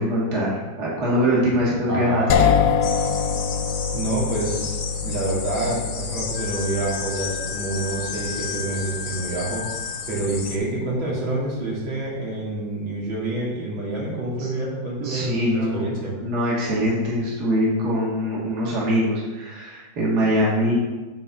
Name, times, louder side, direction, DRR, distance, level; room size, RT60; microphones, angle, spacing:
voice 1, 0.0-2.5 14.4-14.5 15.0-15.8 16.2-20.7, equal, 55° right, -6 dB, 2.3 m, -23 dB
voice 2, 1.9-2.7 3.9-16.1, right 2 dB, 85° right, -6 dB, 3.4 m, -28 dB
sound 1, 2.3-12.1, left 7 dB, 70° left, 1.0 m, -27 dB
sound 2, 2.8-10.6, left 5 dB, 50° left, 1.1 m, -33 dB
Wind instrument woodwind instrument, 6.3-10.2, left 9 dB, 85° left, 1.4 m, -36 dB
9.0 x 4.3 x 5.9 m, 1.2 s
omnidirectional pair, 2.1 m